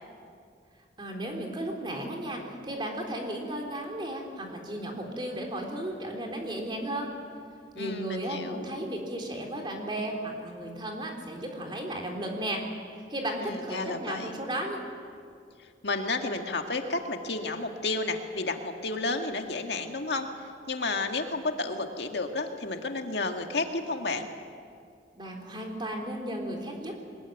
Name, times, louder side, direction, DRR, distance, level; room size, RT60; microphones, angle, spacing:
voice 1, 1.0-7.1 7.7-12.6 13.1-14.8 25.1-26.9, right 1 dB, 25° right, 1 dB, 3.7 m, -34 dB
voice 2, 7.7-8.7 13.4-14.4 15.8-20.3 20.7-24.3, left 3 dB, 70° left, 4 dB, 1.8 m, -31 dB
22.5 x 20.5 x 9.2 m, 2.3 s
head